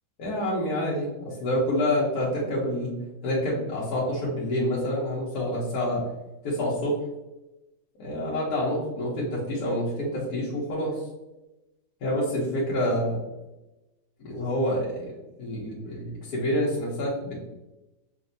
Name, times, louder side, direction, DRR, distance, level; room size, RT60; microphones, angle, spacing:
voice 1, 0.2-2.9 3.2-6.0 6.4-6.9 8.0-10.9 12.0-13.2 14.2-15.1 15.4-17.3, left 1 dB, 60° left, -6 dB, 1.3 m, -27 dB
5.1 x 2.6 x 2.6 m, 1.0 s
omnidirectional pair, 2.0 m